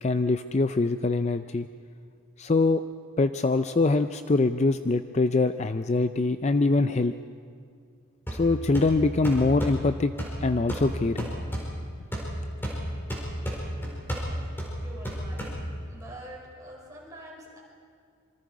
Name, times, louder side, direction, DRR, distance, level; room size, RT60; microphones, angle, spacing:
voice 1, 0.0-1.7 2.4-2.8 3.2-7.1 8.3-10.1 10.4-11.3, left 3 dB, 30° left, 10 dB, 0.4 m, -24 dB
sound 1, 8.3-16.0, equal, 10° left, 4.7 m, -33 dB
voice 2, 14.1-15.4 15.9-17.6, right 1 dB, 15° right, -4 dB, 5.6 m, -46 dB
26.5 x 24.5 x 4.9 m, 2.2 s
head